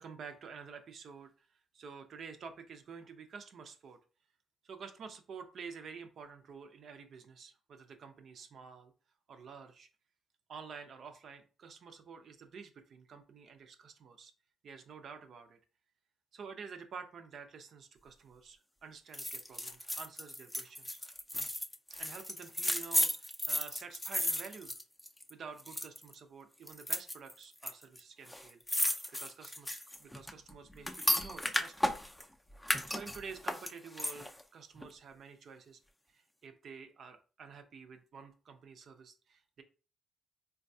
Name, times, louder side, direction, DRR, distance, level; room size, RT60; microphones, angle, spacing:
voice 1, 0.0-4.0 4.6-8.9 9.3-9.9 10.5-14.3 14.6-15.6 16.3-21.0 22.0-24.8 25.3-32.0 32.7-35.8 36.1-39.6, right 5 dB, 60° right, 7 dB, 0.5 m, -50 dB
sound 1, 19.1-25.3 25.6-26.1 26.7-27.7 28.0-28.1 28.3-32.2 32.6-34.4 34.8-34.9, left 1 dB, 5° left, 0.4 m, -34 dB
3.8 x 2.3 x 2.6 m, 0.35 s
cardioid pair, 90°, 0 cm